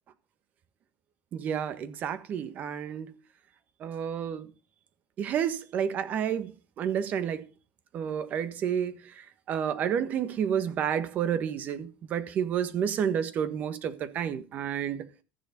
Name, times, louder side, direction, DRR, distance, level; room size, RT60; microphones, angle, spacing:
voice 1, 1.3-3.1 3.8-4.5 5.2-7.5 7.9-15.0, right 8 dB, 45° right, 1.4 m, -30 dB
14.0 x 7.1 x 5.2 m
supercardioid pair, 110°, 4 cm